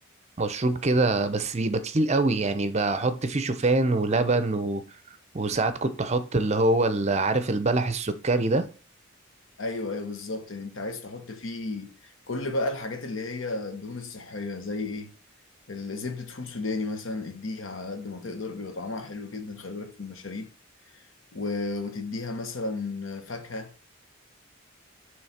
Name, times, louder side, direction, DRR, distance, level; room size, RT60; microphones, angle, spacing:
voice 1, 0.4-4.8 5.3-8.7, right 2 dB, 30° right, 0.6 m, -24 dB
voice 2, 9.6-15.1 15.7-20.5 21.3-23.9, left 3 dB, 70° left, 1.0 m, -33 dB
9.2 x 3.2 x 4.2 m
head